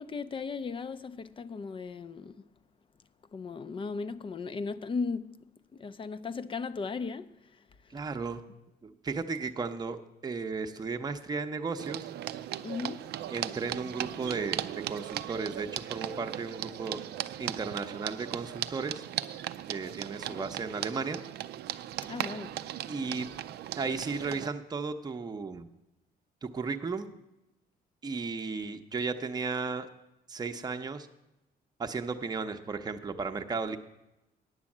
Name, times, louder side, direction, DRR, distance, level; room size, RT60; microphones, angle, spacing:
voice 1, 0.0-2.5 3.3-5.4 5.7-8.0 12.6-13.3 20.3-20.4 22.1-22.6, left 4 dB, 30° left, 0.4 m, -37 dB
voice 2, 7.9-8.4 8.8-10.0 10.2-12.1 13.3-17.0 17.4-19.0 19.7-21.2 22.9-23.3 23.8-25.7 26.4-27.1 28.0-29.9 30.3-31.1 31.8-33.8, right 4 dB, 25° right, 0.7 m, -35 dB
sound 1, 11.8-24.5, right 12 dB, 85° right, 0.4 m, -38 dB
9.6 x 7.5 x 7.2 m
cardioid pair, 120°, 16 cm